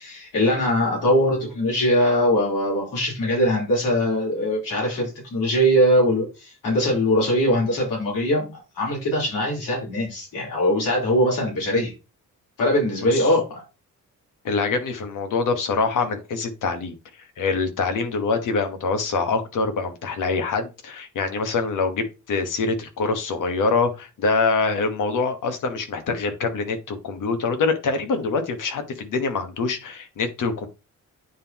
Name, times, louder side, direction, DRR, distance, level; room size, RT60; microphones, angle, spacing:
voice 1, 0.0-8.5 8.8-11.9 12.6-13.6, equal, 90° left, 3.6 m, -21 dB
voice 2, 14.4-16.9 17.4-30.7, left 4 dB, 75° left, 1.4 m, -25 dB
9.3 x 3.7 x 3.0 m
cardioid pair, 120°, 32 cm